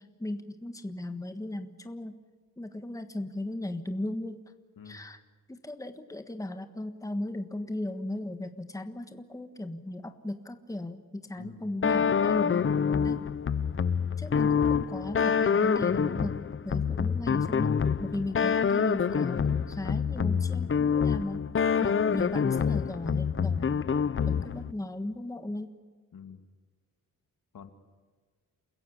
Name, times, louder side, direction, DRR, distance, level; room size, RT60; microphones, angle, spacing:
voice 1, 0.0-2.2 2.6-4.4 4.8-5.2 5.5-12.6 13.0-13.2 14.2-16.4 16.6-21.5 21.8-23.7 24.3-25.7, left 1 dB, 10° left, 8 dB, 1.4 m, -36 dB
voice 2, 11.4-11.7 13.1-13.3 21.9-22.2 26.1-26.4 27.5-27.7, left 6 dB, 70° left, 8 dB, 2.5 m, -47 dB
sound 1, 11.8-24.7, left 6 dB, 35° left, 0.7 m, -26 dB
29.0 x 16.0 x 9.9 m, 1.5 s
wide cardioid pair, 120°, 35 cm